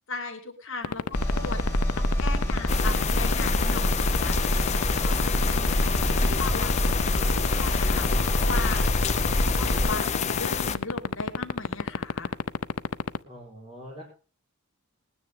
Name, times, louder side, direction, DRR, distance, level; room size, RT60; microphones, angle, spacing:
voice 1, 0.1-8.1 8.4-9.0 9.6-12.3, left 3 dB, 60° left, 2 dB, 2.3 m, -38 dB
sound 1, 0.8-13.2, left 6 dB, 85° left, 0.6 m, -25 dB
sound 2, 1.1-9.9, equal, 10° left, 4.3 m, -26 dB
sound 3, 2.7-10.8, left 7 dB, 30° left, 0.6 m, -29 dB
voice 2, 13.2-14.0, equal, 30° right, -2 dB, 4.6 m, -43 dB
20.0 x 9.7 x 3.7 m, 0.36 s
head